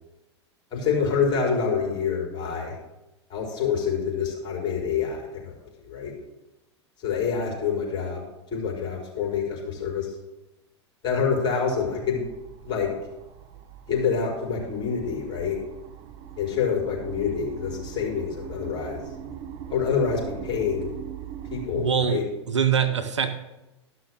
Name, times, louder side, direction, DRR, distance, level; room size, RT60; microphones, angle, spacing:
voice 1, 0.7-2.8 3.3-5.5 5.8-6.1 7.0-10.1 11.0-12.2 12.6-12.9 13.9-15.6 16.4-19.0 19.7-20.9 21.5-22.2, left 6 dB, 30° left, -2 dB, 4.8 m, -27 dB
sound 1, 11.8-21.7, right 9 dB, 40° right, 1.0 m, -41 dB
voice 2, 21.7-22.2 22.5-23.3, right 7 dB, 80° right, 7 dB, 1.0 m, -23 dB
13.0 x 6.2 x 6.5 m, 0.99 s
figure-of-eight pair, 90°, 15 cm